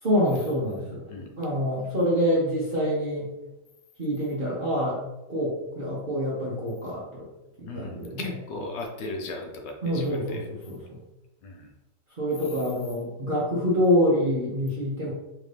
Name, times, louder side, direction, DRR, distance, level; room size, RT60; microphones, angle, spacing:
voice 1, 0.0-1.0 1.4-3.3 4.0-5.0 5.3-7.3 7.6-8.3 9.8-11.0 12.2-15.1, equal, 45° right, -7 dB, 0.7 m, -26 dB
voice 2, 7.6-10.5 11.4-11.7, left 2 dB, 75° left, 3 dB, 1.3 m, -37 dB
4.4 x 2.6 x 3.3 m, 1.0 s
omnidirectional pair, 1.9 m